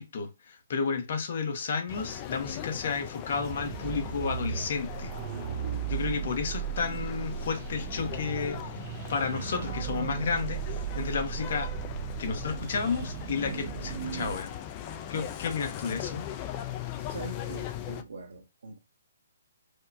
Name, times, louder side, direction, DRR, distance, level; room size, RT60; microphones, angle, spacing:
voice 1, 0.0-5.1 5.9-8.8 9.1-11.7 12.2-14.5 15.1-16.3, left 5 dB, 50° left, 1.0 m, -32 dB
sound 1, 1.9-18.0, left 10 dB, 25° left, 0.4 m, -40 dB
sound 2, 3.3-14.4, right 10 dB, 40° right, 0.4 m, -36 dB
voice 2, 17.1-18.8, right 3 dB, 75° right, 0.9 m, -42 dB
4.9 x 2.2 x 2.7 m
hypercardioid pair, 150°, 0 cm